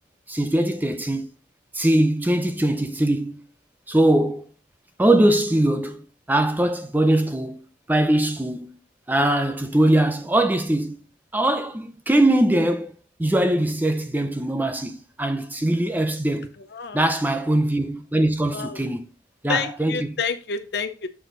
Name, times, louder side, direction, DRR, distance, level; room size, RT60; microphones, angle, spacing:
voice 1, 0.3-1.3 1.7-3.4 3.9-4.4 5.0-7.6 7.9-8.7 9.1-11.0 11.3-12.9 13.2-16.5 16.9-19.0 19.4-20.0, right 1 dB, 10° right, 0.6 m, -21 dB
voice 2, 16.6-17.1 18.5-18.9 19.5-21.1, left 5 dB, 65° left, 0.7 m, -29 dB
8.0 x 4.4 x 3.9 m
head